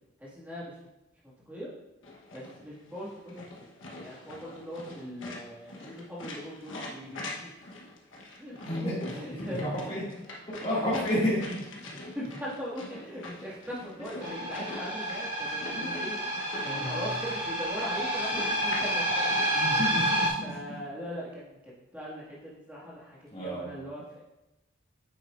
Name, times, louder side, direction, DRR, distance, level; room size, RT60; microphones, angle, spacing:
voice 1, 0.2-0.8 1.2-1.7 2.3-7.5 8.4-9.9 12.1-16.2 16.6-19.5 20.4-24.2, equal, 10° right, -7 dB, 1.9 m, -40 dB
sound 1, 2.0-19.5, left 2 dB, 85° left, 1.1 m, -44 dB
voice 2, 8.6-9.0 9.4-10.0 10.6-11.6 11.9-12.0 14.0-14.1 15.7-16.2 16.6-17.2 19.5-20.6 23.3-23.6, equal, 30° left, -9 dB, 2.2 m, -31 dB
sound 2, 14.2-20.3, right 1 dB, 35° right, 2.5 m, -29 dB
9.0 x 6.4 x 2.5 m, 0.98 s
head